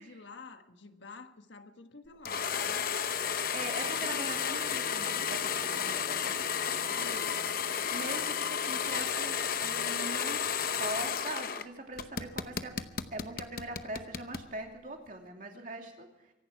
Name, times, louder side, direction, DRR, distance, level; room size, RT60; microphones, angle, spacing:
voice 1, 0.0-2.9, left 4 dB, 80° left, 7 dB, 1.4 m, -50 dB
sound 1, 2.3-11.7 12.0-14.5, left 7 dB, 50° left, 0.8 m, -32 dB
voice 2, 3.5-7.3 7.9-10.4 10.8-12.8 13.1-16.3, right 2 dB, 45° right, 2 dB, 2.7 m, -42 dB
24.5 x 11.0 x 4.7 m, 1.0 s
head